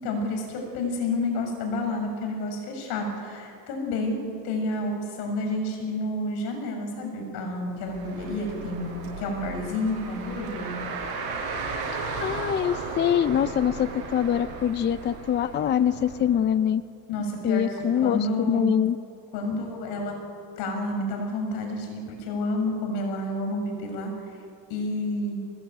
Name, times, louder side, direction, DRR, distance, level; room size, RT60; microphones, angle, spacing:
voice 1, 0.0-4.2 4.4-10.7 17.1-18.7 19.3-20.1 20.6-24.1 24.7-25.4, left 2 dB, 85° left, 3 dB, 6.8 m, -29 dB
Car, 7.8-16.4, right 4 dB, 75° right, 7.1 m, -35 dB
voice 2, 12.2-16.8 17.4-19.0, left 9 dB, 30° left, 14 dB, 0.5 m, -24 dB
23.5 x 20.0 x 9.2 m, 2.4 s
cardioid pair, 140°, 38 cm